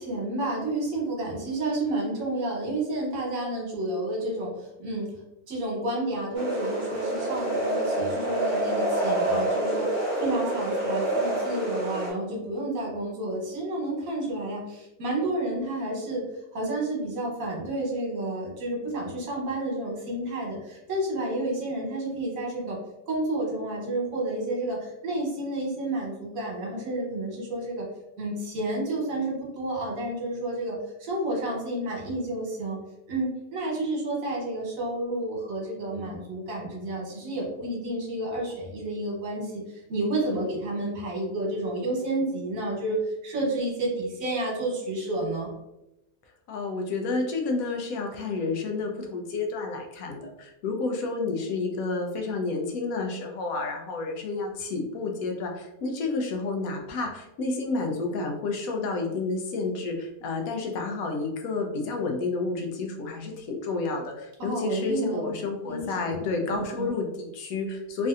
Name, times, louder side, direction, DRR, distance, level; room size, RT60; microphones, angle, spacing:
voice 1, 0.0-5.1 5.5-16.2 16.5-22.8 23.1-27.9 28.2-32.8 33.1-39.6 39.9-45.5 64.4-65.3 65.7-66.9, right 1 dB, 65° right, -3 dB, 1.4 m, -30 dB
sound 1, 6.3-12.1, right 1 dB, 45° right, 1.2 m, -27 dB
voice 2, 40.2-40.5 46.5-68.1, left 3 dB, 75° left, 2 dB, 1.0 m, -30 dB
3.2 x 2.6 x 2.4 m, 0.91 s
omnidirectional pair, 1.6 m